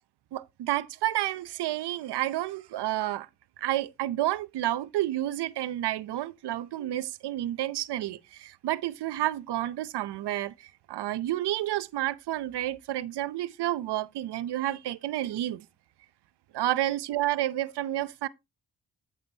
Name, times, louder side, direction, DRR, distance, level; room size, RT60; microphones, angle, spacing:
voice 1, 0.3-3.3 3.6-15.6 16.5-18.3, right 14 dB, 80° right, 0.7 m, -30 dB
8.8 x 7.8 x 2.8 m
supercardioid pair, 50°, 40 cm